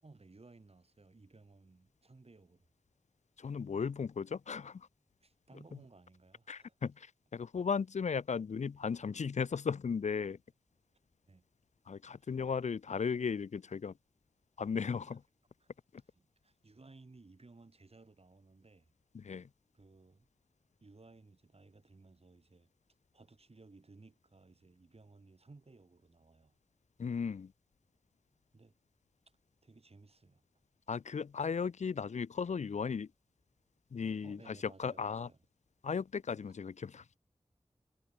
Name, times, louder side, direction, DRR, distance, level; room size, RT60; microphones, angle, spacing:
voice 1, 0.0-2.7 5.2-6.8 11.3-11.4 12.2-12.7 15.0-15.2 15.6-15.7 16.2-18.9 19.7-20.3 20.8-22.7 23.1-26.5 28.5-28.7 29.6-30.4 34.2-35.4 36.3-36.5, right 3 dB, 60° right, 4.6 m, -59 dB
voice 2, 3.4-4.9 6.5-10.4 11.9-13.9 14.6-15.2 19.1-19.5 27.0-27.5 30.9-33.1 33.9-35.3 35.8-37.0, left 6 dB, 85° left, 0.5 m, -36 dB
wide cardioid pair, 60°, 12 cm